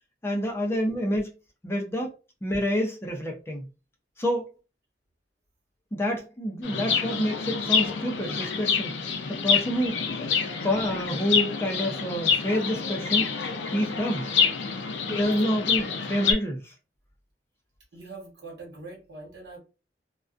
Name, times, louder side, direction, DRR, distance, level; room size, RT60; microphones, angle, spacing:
voice 1, 0.2-1.3 1.6-2.1 2.4-3.7 4.2-4.5 5.9-9.0 9.3-10.1 10.6-13.3 13.7-14.3 15.1-16.7, equal, 15° left, 0.4 m, -28 dB
Chirp tweet, 6.6-16.3, left 6 dB, 85° left, 0.5 m, -27 dB
voice 2, 17.9-19.6, right 3 dB, 70° right, 1.2 m, -43 dB
2.3 x 2.2 x 2.4 m
head